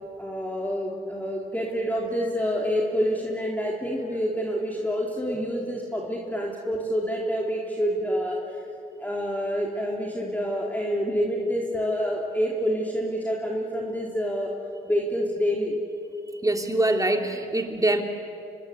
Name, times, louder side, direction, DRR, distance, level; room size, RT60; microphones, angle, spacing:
voice 1, 0.2-8.4 9.0-14.5 14.9-15.8 17.7-17.8, equal, 10° left, -2 dB, 3.7 m, -27 dB
voice 2, 16.4-18.0, right 1 dB, 15° right, 4 dB, 3.2 m, -23 dB
26.5 x 20.0 x 8.3 m, 2.7 s
supercardioid pair, 50°, 20 cm